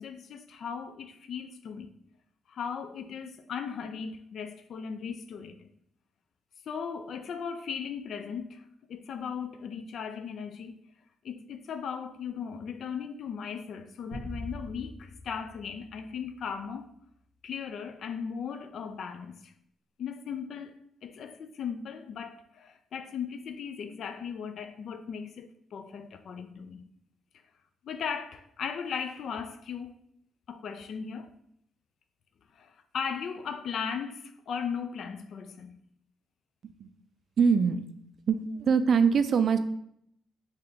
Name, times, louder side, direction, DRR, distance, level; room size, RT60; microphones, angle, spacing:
voice 1, 0.0-1.9 2.5-5.7 6.7-10.8 11.2-16.9 17.4-19.5 20.0-20.7 21.0-26.9 27.8-29.9 30.5-31.3 32.5-35.8, left 6 dB, 60° left, 0.3 m, -37 dB
sound 1, 14.1-16.7, equal, 80° left, 1.0 m, -44 dB
voice 2, 37.4-37.9 38.3-39.6, right 6 dB, 55° right, 0.3 m, -23 dB
3.3 x 2.8 x 3.7 m
cardioid pair, 90°, 0 cm